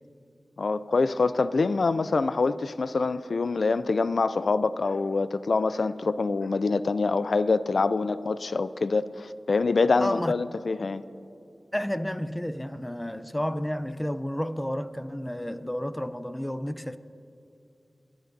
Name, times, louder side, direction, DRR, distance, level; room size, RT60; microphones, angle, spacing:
voice 1, 0.6-11.0, left 4 dB, 75° left, 0.3 m, -25 dB
voice 2, 10.0-10.3 11.7-17.0, equal, 10° left, 0.5 m, -31 dB
22.5 x 11.5 x 2.7 m
wide cardioid pair, 60°, 0 cm